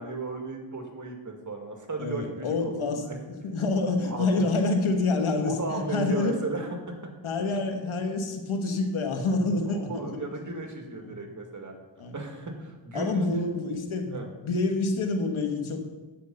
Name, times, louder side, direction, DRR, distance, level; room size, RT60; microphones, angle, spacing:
voice 1, 0.0-3.2 4.0-4.4 5.4-6.7 7.0-7.1 9.6-11.7 12.1-13.5 14.1-14.3, right 2 dB, 40° right, 3 dB, 2.0 m, -35 dB
voice 2, 2.0-6.4 7.2-10.1 11.0-11.2 12.0-12.2 12.9-15.8, left 3 dB, 80° left, 5 dB, 1.4 m, -27 dB
9.3 x 7.9 x 5.3 m, 1.2 s
cardioid pair, 65°, 48 cm